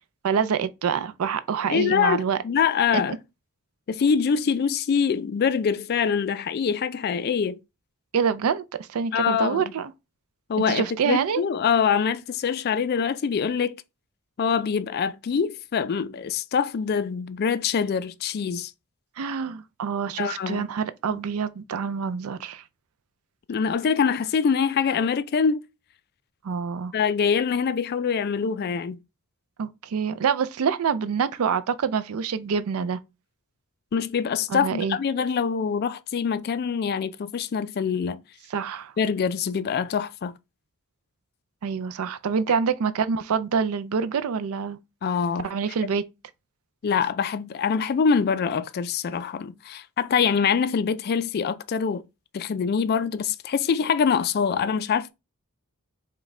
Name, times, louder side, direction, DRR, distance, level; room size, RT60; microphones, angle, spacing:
voice 1, 0.2-2.4 8.1-8.6 8.9-9.9 10.7-11.4 19.2-22.6 26.4-26.9 29.6-33.0 34.5-35.0 38.5-38.9 41.6-44.8 45.4-46.0, right 6 dB, 70° right, 0.4 m, -26 dB
voice 2, 1.7-3.2 3.9-7.6 9.1-9.7 10.5-13.7 14.4-18.7 20.2-20.7 21.1-21.2 23.5-25.6 26.9-29.0 33.9-38.2 39.0-40.4 45.0-45.5 46.8-52.0 52.3-55.1, left 6 dB, 45° left, 0.3 m, -24 dB
5.0 x 2.2 x 3.6 m
head